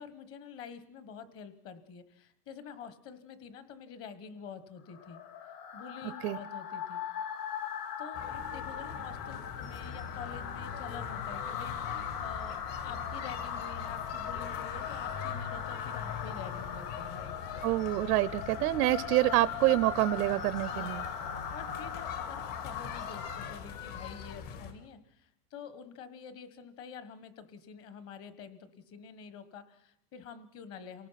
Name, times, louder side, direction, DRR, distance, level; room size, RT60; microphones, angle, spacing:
voice 1, 0.0-5.2 5.7-7.0 8.0-12.6 12.8-17.4 20.7-21.0 21.5-31.1, left 6 dB, 30° left, 13 dB, 1.5 m, -47 dB
sound 1, 4.9-23.8, left 8 dB, 85° left, 2.7 m, -39 dB
sound 2, 8.1-24.7, left 7 dB, 55° left, 3.3 m, -43 dB
voice 2, 17.6-21.0, right 17 dB, 85° right, 17 dB, 0.8 m, -27 dB
28.5 x 18.0 x 5.9 m, 0.74 s
supercardioid pair, 160°, 45 cm